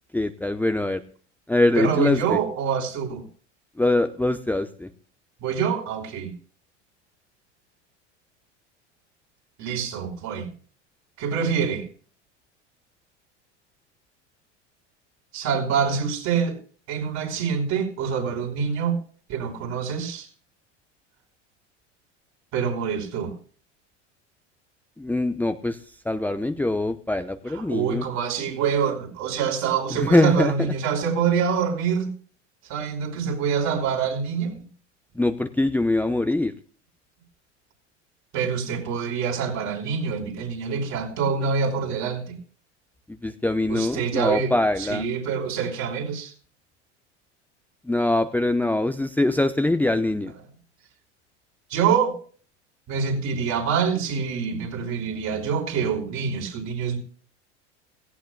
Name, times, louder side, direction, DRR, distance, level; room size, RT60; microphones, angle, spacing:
voice 1, 0.1-1.0 1.5-2.4 3.8-4.9 25.0-25.8 26.0-28.0 29.9-30.7 35.2-36.5 43.2-45.1 47.9-50.3, left 2 dB, 5° left, 0.8 m, -23 dB
voice 2, 1.7-3.2 5.4-6.3 9.6-10.5 11.2-11.9 15.3-16.6 16.9-19.0 19.3-20.3 22.5-23.3 27.5-32.1 32.7-34.6 38.3-42.4 43.7-46.3 51.7-52.1 52.9-57.0, right 6 dB, 50° right, 5.1 m, -26 dB
17.0 x 16.5 x 2.3 m
hypercardioid pair, 80°, 36 cm